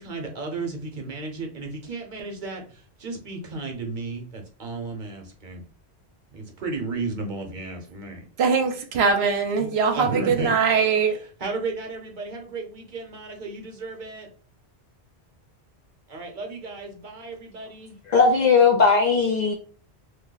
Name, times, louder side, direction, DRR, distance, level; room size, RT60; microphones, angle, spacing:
voice 1, 0.0-5.6 6.3-8.3 9.6-10.5 11.1-14.3 16.1-18.0, right 3 dB, 50° right, 0.8 m, -34 dB
voice 2, 8.4-11.2, right 5 dB, 75° right, 0.9 m, -22 dB
voice 3, 18.1-19.5, left 4 dB, 55° left, 0.5 m, -18 dB
2.8 x 2.1 x 3.7 m
omnidirectional pair, 1.1 m